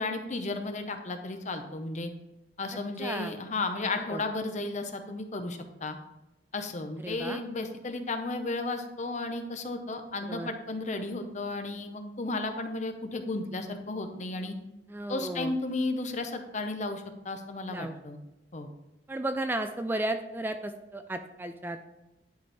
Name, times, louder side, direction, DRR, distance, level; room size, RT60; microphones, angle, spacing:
voice 1, 0.0-2.1 2.6-6.0 6.5-14.6 15.1-18.2 18.5-18.7, left 2 dB, 40° left, 7 dB, 0.7 m, -34 dB
voice 2, 2.7-3.3 4.1-4.2 7.0-7.4 10.2-10.5 14.9-15.5 17.7-17.9 19.1-21.8, right 1 dB, 10° right, 7 dB, 0.3 m, -34 dB
10.5 x 4.3 x 3.3 m, 0.97 s
head